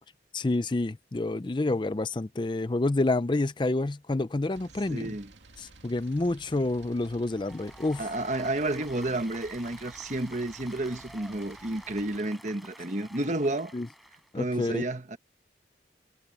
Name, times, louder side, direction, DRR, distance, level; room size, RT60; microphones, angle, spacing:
voice 1, 0.3-5.1 5.6-8.1 13.7-13.9 14.3-14.8, left 2 dB, 25° left, 0.5 m, -28 dB
sound 1, 4.5-12.2, right 3 dB, 90° right, 2.6 m, -54 dB
voice 2, 4.9-5.3 8.0-13.7 14.3-15.2, right 2 dB, 40° right, 1.4 m, -31 dB
Applause, 7.3-14.3, equal, ahead, 5.5 m, -50 dB
head